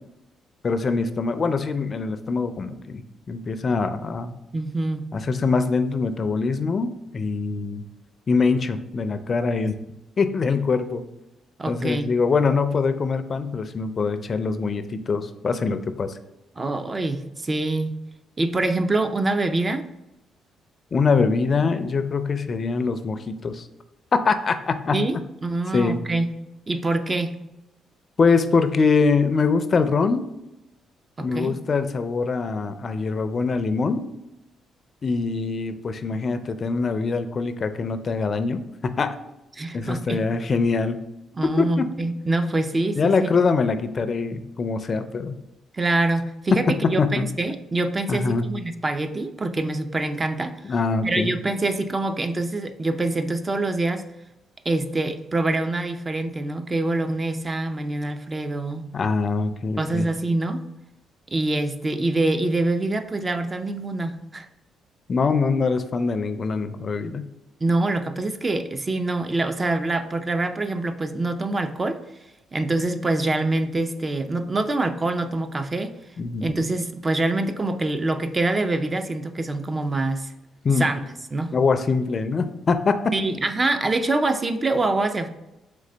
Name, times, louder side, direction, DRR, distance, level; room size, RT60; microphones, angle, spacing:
voice 1, 0.6-3.0 3.3-4.4 5.1-7.8 8.3-9.7 10.2-11.0 11.7-16.1 20.9-23.7 24.1-25.0 25.7-26.0 28.2-30.2 31.2-34.0 35.0-39.2 39.7-41.0 41.4-41.8 43.0-45.4 46.7-47.3 48.1-48.5 50.6-51.3 58.9-60.1 65.1-67.2 76.2-76.5 80.6-80.9 81.5-83.0, left 4 dB, 40° left, 10 dB, 0.4 m, -23 dB
voice 2, 4.5-5.1 11.6-12.1 16.6-17.9 18.4-19.8 24.9-26.3 26.7-27.4 31.2-31.6 39.6-40.2 41.4-43.3 45.7-50.7 51.0-54.1 54.7-58.9 59.8-60.6 61.3-64.5 67.6-72.0 72.5-75.9 76.4-80.3 80.8-81.0 81.3-81.5 83.1-85.3, right 2 dB, 25° right, 9 dB, 0.4 m, -25 dB
3.8 x 3.3 x 3.3 m, 0.96 s
cardioid pair, 90°, 0 cm